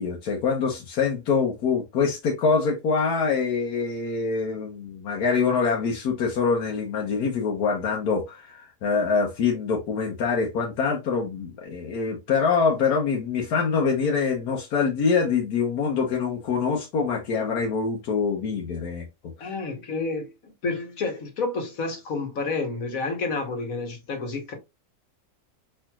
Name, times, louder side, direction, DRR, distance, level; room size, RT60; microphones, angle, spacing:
voice 1, 0.0-19.0 19.4-19.5, left 5 dB, 85° left, 1.4 m, -25 dB
voice 2, 19.4-20.3 20.6-24.5, left 3 dB, 65° left, 1.7 m, -29 dB
5.0 x 4.4 x 2.3 m
omnidirectional pair, 1.6 m